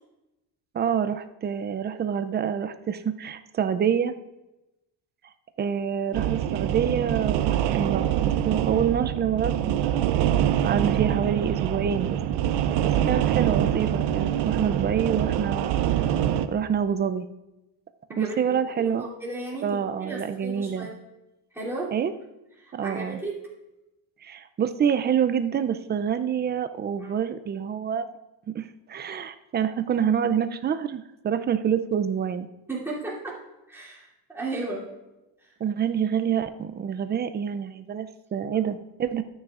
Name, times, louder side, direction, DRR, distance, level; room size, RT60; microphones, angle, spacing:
voice 1, 0.7-4.1 5.6-10.1 10.6-12.2 12.8-15.8 16.5-17.3 18.2-19.1 19.6-20.9 21.9-22.1 22.7-23.2 24.2-28.1 28.5-32.5 35.6-39.2, right 8 dB, 25° right, 11 dB, 0.4 m, -27 dB
sound 1, 6.1-16.5, right 11 dB, 65° right, 0.7 m, -25 dB
voice 2, 18.1-20.9 21.5-21.9 22.6-23.4 27.0-27.1 32.7-33.4 33.7-34.9 35.4-35.5, right 2 dB, 5° right, -7 dB, 2.8 m, -35 dB
13.5 x 9.5 x 2.4 m, 0.99 s
cardioid pair, 125°, 45 cm